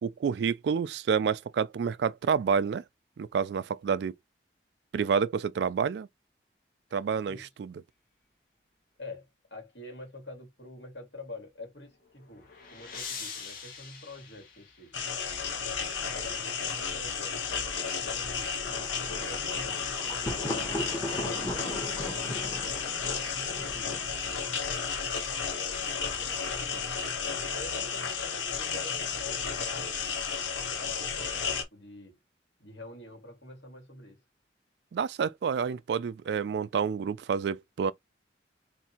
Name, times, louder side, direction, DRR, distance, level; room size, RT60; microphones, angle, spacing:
voice 1, 0.0-2.8 3.2-4.1 4.9-6.1 6.9-7.7 34.9-37.9, right 6 dB, 65° right, 0.3 m, -29 dB
voice 2, 9.0-15.0 15.5-22.6 23.0-24.0 24.5-24.8 25.5-26.9 27.5-32.2 32.6-34.2, left 1 dB, 70° left, 2.1 m, -47 dB
sound 1, 11.9-15.2, left 6 dB, 50° left, 1.4 m, -43 dB
sound 2, 14.9-31.6, left 6 dB, 90° left, 1.2 m, -33 dB
Thunder, 18.6-24.5, left 1 dB, 20° left, 1.0 m, -38 dB
3.4 x 2.6 x 4.2 m
head